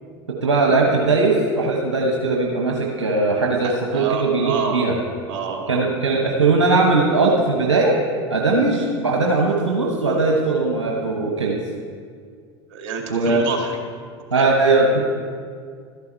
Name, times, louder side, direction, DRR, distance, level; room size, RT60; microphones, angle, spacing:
voice 1, 0.4-4.9 5.7-7.9 8.3-11.6 13.1-13.5 14.3-15.1, right 3 dB, 85° right, -1 dB, 1.2 m, -19 dB
voice 2, 3.6-4.9 5.3-5.8 12.7-13.8 14.3-14.5, right 5 dB, 55° right, 2 dB, 2.3 m, -28 dB
13.0 x 11.0 x 4.5 m, 2.1 s
hypercardioid pair, 80°, 15 cm